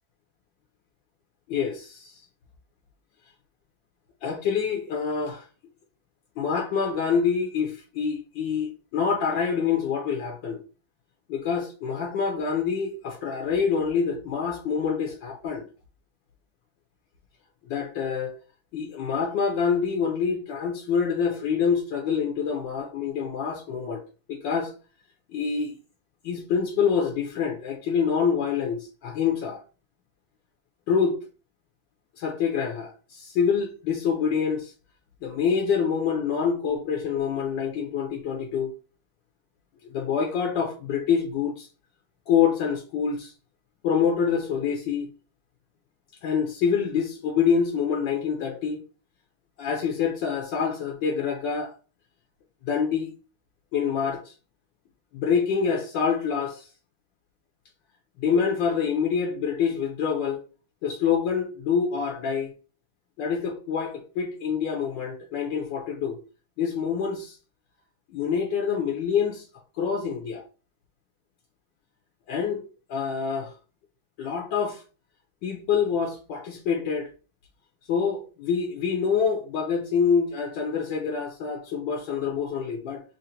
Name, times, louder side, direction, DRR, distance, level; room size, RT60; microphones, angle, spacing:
voice 1, 1.5-2.1 4.2-5.5 6.4-10.6 11.3-15.6 17.6-18.3 18.7-24.0 24.3-24.7 25.3-25.8 26.2-29.6 30.9-31.2 32.2-34.7 35.2-38.7 39.9-41.7 42.3-43.3 43.8-45.1 46.2-48.8 49.6-51.7 52.6-53.1 53.7-54.3 55.1-56.7 58.2-60.4 60.8-62.5 63.2-66.2 66.6-67.4 68.1-69.5 69.7-70.4 72.3-72.6 72.9-73.5 74.2-74.8 75.4-77.1 77.9-83.0, left 6 dB, 75° left, 1.3 m, -26 dB
3.8 x 2.1 x 4.2 m
omnidirectional pair, 2.1 m